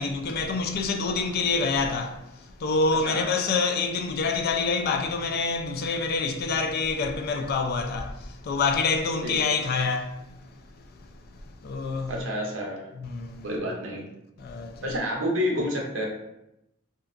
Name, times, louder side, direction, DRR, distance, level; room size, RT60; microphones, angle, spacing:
voice 1, 0.0-10.5 11.0-11.1 11.6-12.1 13.0-13.5 14.4-14.8, left 4 dB, 50° left, 0.3 m, -27 dB
voice 2, 12.1-12.9 13.4-14.1 14.8-16.1, equal, 75° right, 0.7 m, -29 dB
2.7 x 2.2 x 2.4 m
head